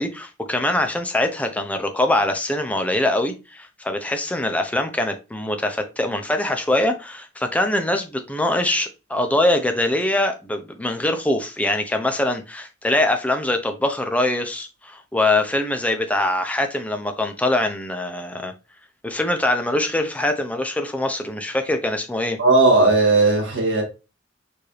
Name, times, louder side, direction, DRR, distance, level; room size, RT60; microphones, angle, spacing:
voice 1, 0.0-18.5 19.0-22.4, left 1 dB, 10° left, 0.5 m, -23 dB
voice 2, 22.4-23.8, right 3 dB, 75° right, 1.8 m, -16 dB
4.7 x 2.6 x 3.1 m
head